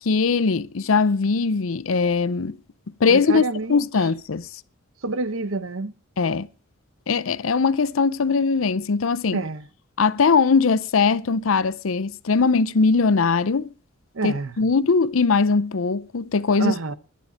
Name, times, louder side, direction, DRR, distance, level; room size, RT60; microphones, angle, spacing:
voice 1, 0.0-2.6 3.0-4.5 6.2-6.5 7.1-9.4 10.0-13.7 14.2-16.7, left 4 dB, 90° left, 0.6 m, -20 dB
voice 2, 3.1-3.9 5.0-5.9 9.3-9.6 14.1-14.5 16.6-16.9, right 3 dB, 80° right, 1.0 m, -27 dB
11.5 x 11.5 x 5.1 m
head